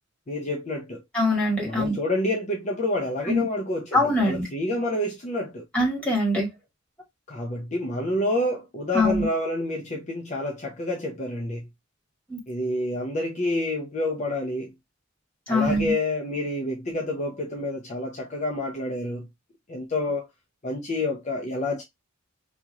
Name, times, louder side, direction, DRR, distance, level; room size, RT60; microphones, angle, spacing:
voice 1, 0.3-1.0 1.6-5.6 7.3-11.7 12.5-14.7 15.5-19.3 19.7-20.3 20.6-21.8, left 1 dB, 35° left, 0.7 m, -28 dB
voice 2, 1.1-2.0 3.3-3.5 3.9-4.4 5.7-6.5 8.9-9.3 12.3-12.4 15.5-15.9, left 1 dB, 5° left, 2.0 m, -23 dB
4.3 x 2.9 x 2.4 m
head